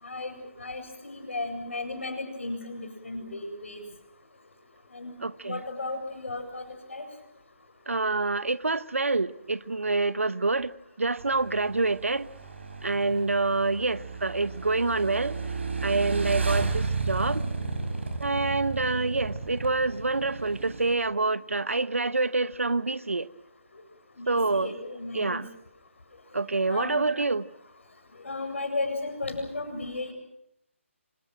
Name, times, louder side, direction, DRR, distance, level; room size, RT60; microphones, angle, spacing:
voice 1, 0.0-3.8 4.9-5.1 5.4-7.0 24.2-25.4 26.7-27.1 28.2-30.1, left 2 dB, 65° left, 7.8 m, -35 dB
voice 2, 5.2-5.6 7.9-10.7 11.0-12.3 12.8-15.4 15.8-17.5 18.2-23.3 24.3-24.7 25.1-25.5 26.3-27.4, right 3 dB, 75° right, 1.1 m, -27 dB
Motorcycle / Engine, 11.2-20.9, right 4 dB, 60° right, 5.9 m, -33 dB
27.5 x 26.5 x 6.1 m
figure-of-eight pair, 145°, 7 cm